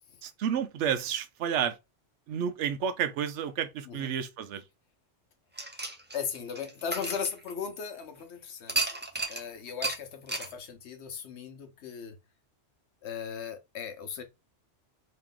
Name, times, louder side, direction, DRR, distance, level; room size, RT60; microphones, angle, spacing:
voice 1, 0.2-1.8 2.3-4.6, right 8 dB, 80° right, 0.9 m, -30 dB
sound 1, 5.6-8.0 8.7-9.4 9.8-10.0 10.3-10.5, right 2 dB, 15° right, 0.3 m, -33 dB
voice 2, 6.1-8.9 9.3-12.2 13.0-14.2, left 7 dB, 70° left, 1.0 m, -37 dB
3.0 x 2.9 x 3.6 m
omnidirectional pair, 1.2 m